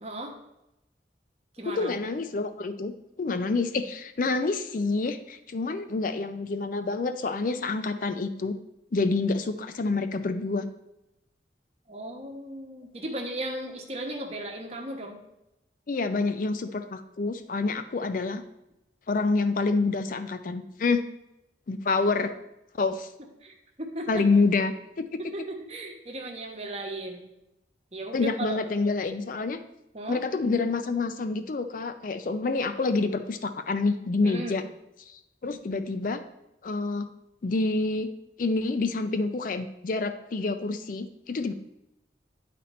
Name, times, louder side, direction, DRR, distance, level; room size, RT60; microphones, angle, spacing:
voice 1, 0.0-0.4 1.6-1.9 11.9-15.2 23.4-24.2 25.3-27.2 27.9-28.6 29.9-30.2 34.2-34.6, right 1 dB, 35° right, 1 dB, 1.1 m, -36 dB
voice 2, 1.7-8.6 8.9-10.7 15.9-18.4 19.1-21.0 21.7-22.3 22.8-23.1 24.1-25.3 28.1-29.6 30.1-34.6 35.1-36.2 36.6-37.1 37.4-38.1 38.4-41.5, left 3 dB, 45° left, 10 dB, 0.4 m, -27 dB
9.7 x 4.2 x 4.2 m, 0.88 s
head